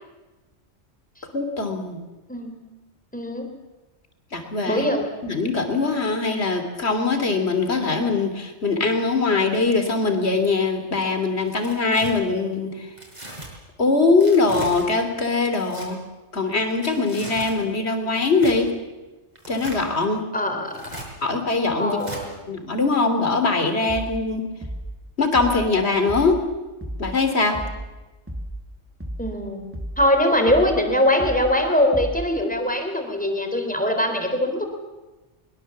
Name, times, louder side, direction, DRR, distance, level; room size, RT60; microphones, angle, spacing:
voice 1, 1.3-2.0 4.3-4.9 5.2-12.9 13.8-16.0 16.3-18.7 19.5-20.2 21.2-22.0 22.5-24.4 25.2-26.4 27.0-27.6, left 3 dB, 60° left, 7 dB, 3.2 m, -22 dB
voice 2, 2.3-2.7 3.1-3.5 4.6-5.2 20.3-21.0 21.8-22.3 29.2-29.6 30.0-34.6, left 1 dB, 5° left, 4 dB, 3.8 m, -22 dB
Tearing, 11.4-12.1 13.0-13.5 14.2-14.9 15.6-15.9 16.7-17.6 18.3-18.6 19.4-19.9 20.7-21.1 22.0-22.2, right 1 dB, 35° right, 5.8 m, -37 dB
sound 1, 23.9-24.3 24.6-25.0 25.3-25.7 26.1-26.4 26.8-27.2 27.5-27.9 28.3-28.6 29.0-29.4 29.7-30.1 30.5-30.8 31.2-31.6 31.9-32.3, right 1 dB, 10° right, 2.2 m, -33 dB
22.5 x 22.5 x 7.3 m, 1.1 s
omnidirectional pair, 1.2 m